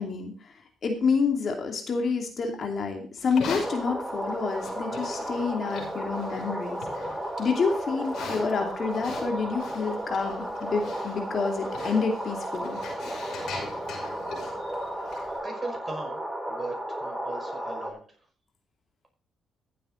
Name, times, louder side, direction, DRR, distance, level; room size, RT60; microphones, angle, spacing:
voice 1, 0.0-6.8 7.4-12.8, left 5 dB, 50° left, 3 dB, 2.6 m, -28 dB
Livestock farm animals working animals, 3.2-15.4, left 4 dB, 70° left, 6.2 m, -42 dB
sound 1, 3.6-17.9, right 1 dB, 5° right, 3.2 m, -34 dB
voice 2, 15.4-16.2 16.5-18.0, right 3 dB, 20° right, 2 dB, 5.5 m, -38 dB
15.0 x 7.8 x 3.8 m, 0.42 s
cardioid pair, 90°, 0 cm